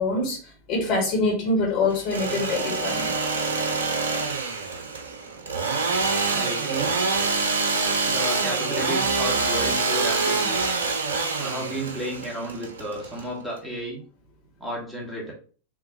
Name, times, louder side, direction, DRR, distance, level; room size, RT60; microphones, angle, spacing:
voice 1, 0.0-3.1, left 3 dB, 40° left, -3 dB, 1.7 m, -25 dB
Engine / Sawing, 1.9-13.6, right 4 dB, 70° right, 0.6 m, -26 dB
voice 2, 6.3-7.0 8.0-10.6 11.4-14.0 14.6-15.3, equal, 5° right, -3 dB, 1.6 m, -32 dB
5.8 x 2.7 x 2.9 m, 0.40 s
figure-of-eight pair, 90°, 0 cm